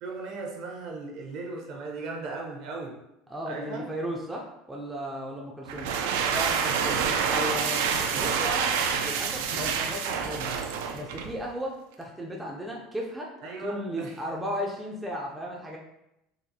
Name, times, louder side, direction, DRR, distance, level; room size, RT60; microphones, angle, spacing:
voice 1, 0.0-2.9 3.5-3.8 6.3-7.1 13.4-14.2, right 3 dB, 50° right, 0 dB, 0.7 m, -36 dB
voice 2, 3.3-5.9 7.3-8.8 9.0-10.5 10.9-13.3 13.6-15.8, equal, 5° right, -2 dB, 0.4 m, -35 dB
sound 1, 5.7-11.4, right 6 dB, 80° right, 0.3 m, -27 dB
4.0 x 2.5 x 2.7 m, 0.85 s
cardioid pair, 150°, 0 cm